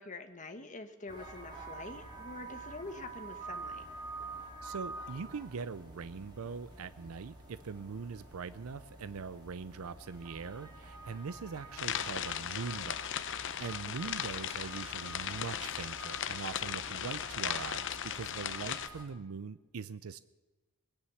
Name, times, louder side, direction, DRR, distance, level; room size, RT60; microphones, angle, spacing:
voice 1, 0.0-3.8 14.0-14.1, left 3 dB, 35° left, 7 dB, 1.3 m, -46 dB
sound 1, 1.1-19.0, right 3 dB, 20° right, 3.8 m, -48 dB
voice 2, 4.6-13.0 13.3-20.2, right 5 dB, 75° right, 15 dB, 0.5 m, -42 dB
sound 2, 11.8-18.9, left 9 dB, 55° left, 0.7 m, -37 dB
20.0 x 9.9 x 7.0 m, 1.2 s
head